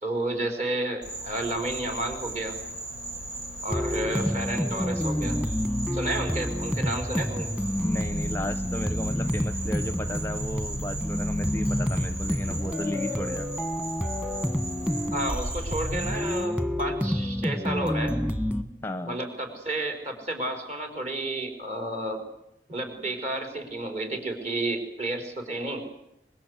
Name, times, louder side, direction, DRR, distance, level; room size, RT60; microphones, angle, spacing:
voice 1, 0.0-2.6 3.6-5.4 5.9-7.5 15.1-18.2 19.0-22.2 22.7-25.8, right 1 dB, 40° right, 4 dB, 4.8 m, -31 dB
Insect, 1.0-16.5, right 2 dB, 80° right, 5.1 m, -38 dB
sound 1, 3.7-18.6, left 1 dB, 5° right, 1.6 m, -29 dB
voice 2, 7.8-13.5 18.8-19.2, left 1 dB, 10° left, 11 dB, 0.8 m, -34 dB
24.5 x 21.5 x 8.2 m, 0.86 s
head